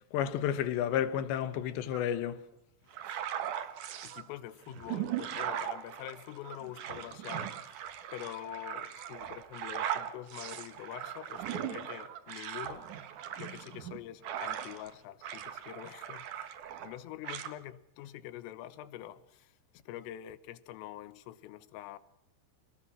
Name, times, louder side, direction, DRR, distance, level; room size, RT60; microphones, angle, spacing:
voice 1, 0.1-2.4, left 10 dB, 70° left, 3.1 m, -31 dB
sound 1, 1.9-2.2 3.0-3.4 4.0-4.6 5.3-5.8 6.3-6.8 7.4-7.9 8.9-9.3 9.9-10.4 10.9-11.3 12.0-12.3 12.6-12.8 13.1-13.4, right 11 dB, 85° right, 4.5 m, -52 dB
sound 2, 2.9-4.2 4.7-14.9 15.2-17.0 17.2-17.5, right 10 dB, 65° right, 2.0 m, -39 dB
voice 2, 4.0-7.8 8.1-12.9 13.4-19.6 19.9-22.0, left 13 dB, 85° left, 3.8 m, -45 dB
28.5 x 18.5 x 6.2 m
omnidirectional pair, 5.7 m